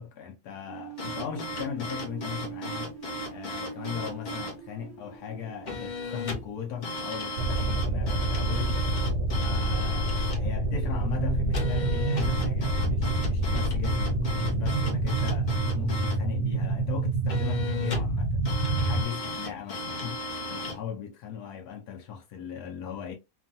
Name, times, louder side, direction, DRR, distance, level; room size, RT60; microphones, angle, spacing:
voice 1, 0.0-3.0 3.3-9.0 9.4-18.4 18.8-23.1, left 8 dB, 80° left, 1.1 m, -38 dB
sound 1, 0.7-7.5, right 9 dB, 65° right, 0.9 m, -44 dB
sound 2, 1.0-4.6 5.7-6.5 6.8-10.4 11.5-16.2 17.3-18.1 18.4-20.8, left 2 dB, 55° left, 0.5 m, -35 dB
sound 3, 7.4-19.0, right 2 dB, 80° right, 1.2 m, -27 dB
3.1 x 2.3 x 2.5 m
omnidirectional pair, 1.7 m